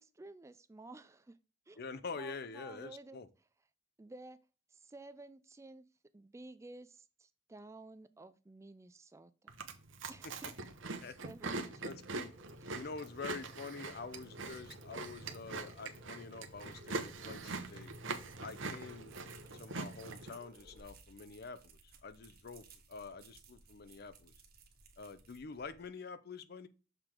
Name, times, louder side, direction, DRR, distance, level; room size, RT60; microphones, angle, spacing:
voice 1, 0.0-1.4 1.7-3.2 4.0-4.4 4.7-5.9 6.1-9.6 10.1-10.5 11.2-11.9 12.6-12.7, right 2 dB, 15° right, 0.4 m, -53 dB
voice 2, 1.8-3.3 10.2-10.5 11.0-11.2 11.8-12.3 12.7-17.9 18.4-19.1 19.5-24.3 25.0-26.7, left 4 dB, 55° left, 0.6 m, -47 dB
Chewing mastication, 9.5-20.3, right 3 dB, 85° right, 0.9 m, -43 dB
sound 1, 11.9-20.8, left 1 dB, 70° right, 1.4 m, -60 dB
sound 2, 16.5-25.9, right 5 dB, 55° right, 1.4 m, -61 dB
6.7 x 3.8 x 4.5 m
head